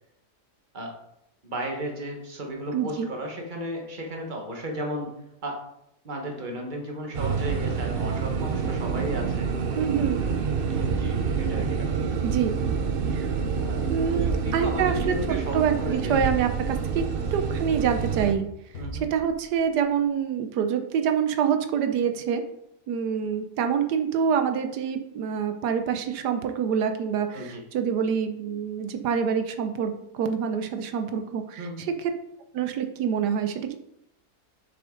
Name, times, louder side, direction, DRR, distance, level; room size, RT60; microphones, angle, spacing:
voice 1, 1.4-5.1 5.4-5.6 6.0-9.5 10.7-12.0 13.6-16.1 18.8-19.0 27.3-27.6 31.6-31.8, right 1 dB, 30° right, 1 dB, 1.6 m, -34 dB
voice 2, 2.7-3.1 9.8-10.2 12.2-12.6 13.1-13.3 13.9-15.1 15.5-17.0 17.3-18.5 18.9-22.4 22.9-31.9 32.5-33.7, right 7 dB, 85° right, 7 dB, 1.3 m, -26 dB
sound 1, 7.1-18.3, right 6 dB, 50° right, 0.7 m, -27 dB
sound 2, 13.4-14.4 16.1-17.2 18.7-19.7, right 1 dB, 55° left, 1.7 m, -39 dB
7.3 x 6.8 x 3.9 m, 0.80 s
omnidirectional pair, 1.7 m